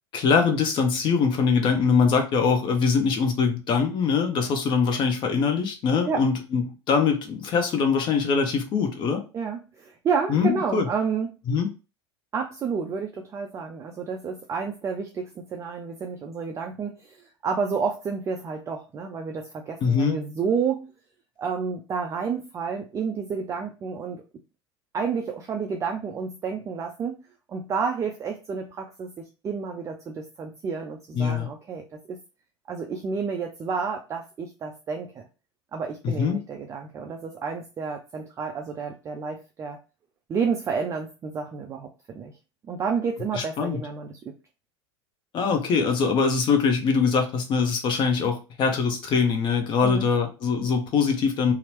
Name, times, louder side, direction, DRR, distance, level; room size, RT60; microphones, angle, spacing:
voice 1, 0.1-9.2 10.3-10.9 11.5-11.7 19.8-20.2 31.1-31.5 36.0-36.4 43.3-43.8 45.3-51.5, left 5 dB, 35° left, 5 dB, 0.7 m, -23 dB
voice 2, 9.3-11.3 12.3-20.9 21.4-24.2 24.9-27.2 27.5-32.2 32.7-35.2 35.7-39.8 40.3-42.3 42.7-44.3 49.8-50.1, right 5 dB, 20° right, 3 dB, 0.4 m, -30 dB
2.8 x 2.0 x 2.9 m, 0.31 s
figure-of-eight pair, 80°, 14 cm